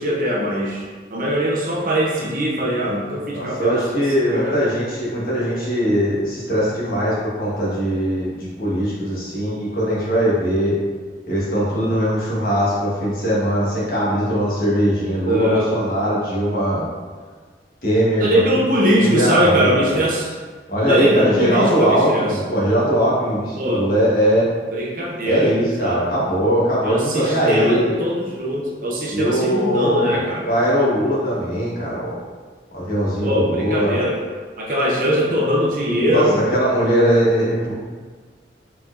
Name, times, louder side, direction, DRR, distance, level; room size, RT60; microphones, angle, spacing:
voice 1, 0.0-3.8 4.3-4.6 15.2-15.7 18.2-20.3 20.8-22.4 23.6-23.8 24.7-26.0 26.8-30.5 33.2-34.2 34.6-36.4, equal, 50° right, -3 dB, 0.7 m, -21 dB
voice 2, 3.3-10.7 11.3-16.8 17.8-18.4 18.9-20.0 20.7-24.5 25.3-27.9 29.1-32.2 32.7-34.0 36.1-37.8, equal, 50° left, -8 dB, 1.3 m, -20 dB
4.3 x 4.1 x 2.6 m, 1.5 s
head